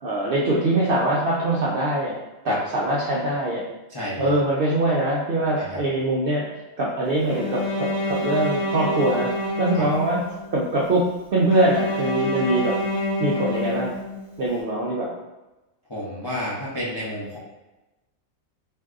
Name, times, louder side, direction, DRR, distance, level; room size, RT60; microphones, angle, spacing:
voice 1, 0.0-2.2 2.4-3.6 4.2-6.4 6.8-9.3 9.6-10.2 10.5-12.7 13.2-13.9 14.4-15.1, right 1 dB, 65° right, -5 dB, 0.5 m, -23 dB
voice 2, 3.9-4.3 5.6-5.8 9.7-9.9 15.9-17.4, left 1 dB, 35° left, -8 dB, 0.3 m, -31 dB
Bowed string instrument, 7.3-10.5 11.5-14.4, left 1 dB, 70° left, 1.1 m, -27 dB
3.6 x 2.6 x 2.4 m, 1.0 s
omnidirectional pair, 1.5 m